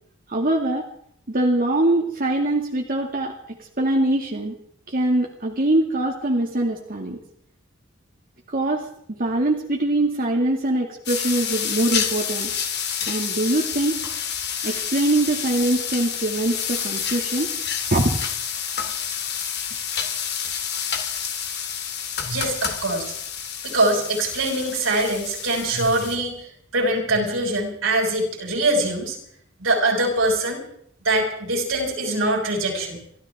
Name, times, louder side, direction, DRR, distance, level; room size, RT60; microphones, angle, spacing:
voice 1, 0.3-0.9 1.3-4.6 4.9-7.2 8.5-8.9 9.2-12.5 13.1-14.0 14.6-17.5 17.9-18.2, right 1 dB, 45° right, 0 dB, 2.1 m, -23 dB
sound 1, 11.1-26.2, left 7 dB, 55° left, 2.4 m, -29 dB
voice 2, 22.2-23.1 23.6-26.5 26.7-29.2 29.6-30.6 31.0-33.0, right 2 dB, 80° right, 0 dB, 6.5 m, -23 dB
29.0 x 13.5 x 3.6 m, 0.66 s
head